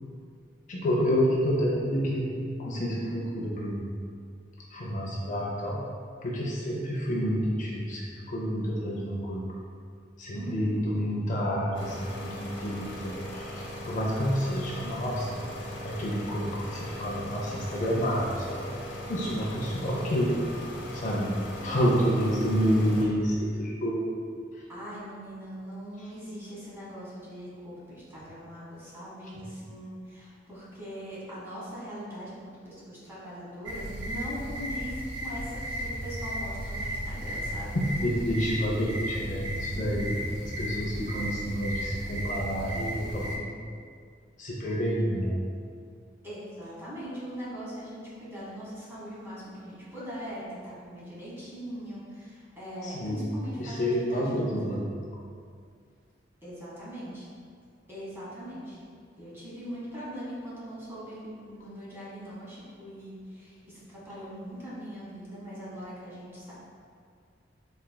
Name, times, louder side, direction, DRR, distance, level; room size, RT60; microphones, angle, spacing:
voice 1, 0.7-2.3 2.6-3.9 4.7-5.8 6.2-9.5 10.2-15.4 15.8-18.6 19.1-20.4 20.9-21.4 21.6-24.0 24.5-24.6 37.7-40.2 40.6-43.5 44.4-45.4 52.8-53.3 53.6-54.9, equal, 45° left, -4 dB, 0.5 m, -29 dB
voice 2, 10.3-10.8 24.7-34.9 35.2-37.8 46.2-54.6 56.4-57.3 57.9-58.8 59.2-66.5, equal, 15° right, -9 dB, 1.2 m, -41 dB
sound 1, 11.7-23.1, left 1 dB, 75° left, 0.7 m, -39 dB
sound 2, 33.6-43.4, equal, 80° right, 0.6 m, -35 dB
4.3 x 3.2 x 2.2 m, 2.2 s
head